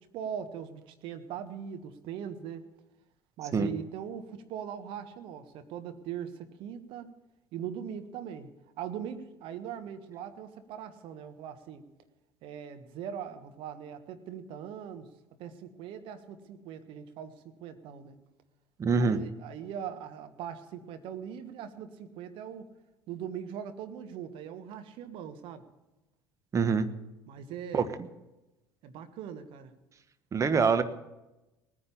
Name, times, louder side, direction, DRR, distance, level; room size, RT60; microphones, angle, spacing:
voice 1, 0.0-2.7 3.4-7.1 7.5-8.5 8.8-11.8 12.4-15.1 15.4-18.2 19.0-22.7 23.1-25.6 27.3-27.9 28.8-29.7 30.5-30.6, right 8 dB, 50° right, 8 dB, 1.5 m, -40 dB
voice 2, 18.8-19.2 26.5-26.9 27.7-28.1 30.3-30.8, right 5 dB, 30° right, 10 dB, 1.3 m, -25 dB
19.0 x 9.8 x 7.1 m, 1.0 s
figure-of-eight pair, 65°, 11 cm